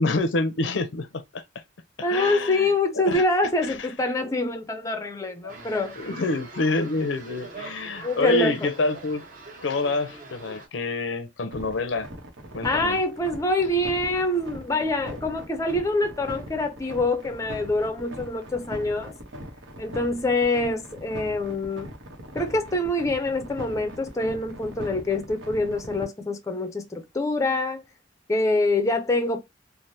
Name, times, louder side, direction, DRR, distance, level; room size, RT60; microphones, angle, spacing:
voice 1, 0.0-1.4 2.1-2.7 2.9-3.2 3.6-3.9 5.4-5.5 6.0-9.2 9.6-12.1 12.5-13.0, left 2 dB, 75° left, 0.5 m, -27 dB
voice 2, 2.0-6.0 8.0-8.7 12.6-19.2 19.8-21.9 22.3-27.9 28.3-29.4, left 2 dB, 15° left, 0.4 m, -25 dB
sound 1, 5.5-10.7, right 2 dB, 45° right, 0.9 m, -43 dB
sound 2, 11.5-26.0, equal, 80° right, 0.9 m, -40 dB
3.3 x 2.0 x 2.6 m
head